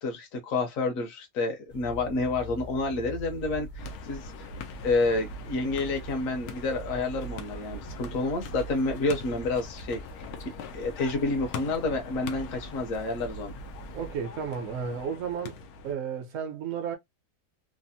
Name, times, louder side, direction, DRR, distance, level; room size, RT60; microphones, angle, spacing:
voice 1, 0.0-4.5 4.8-10.2 10.7-13.5, left 3 dB, 65° left, 1.1 m, -29 dB
sound 1, 1.7-14.2, right 2 dB, 45° left, 0.6 m, -43 dB
sound 2, 3.8-15.9, left 5 dB, 85° left, 1.1 m, -43 dB
voice 2, 13.9-15.6 15.8-17.0, right 7 dB, 65° right, 1.1 m, -33 dB
3.2 x 2.0 x 2.6 m
omnidirectional pair, 1.5 m